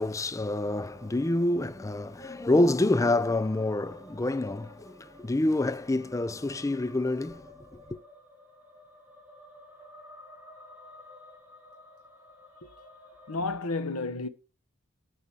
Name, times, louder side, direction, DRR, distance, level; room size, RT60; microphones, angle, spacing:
voice 1, 0.0-8.0, left 2 dB, 15° left, 0.4 m, -27 dB
sound 1, 0.5-13.4, left 1 dB, 10° right, 2.2 m, -52 dB
voice 2, 13.3-14.3, left 3 dB, 90° left, 1.1 m, -31 dB
10.5 x 4.9 x 7.2 m
head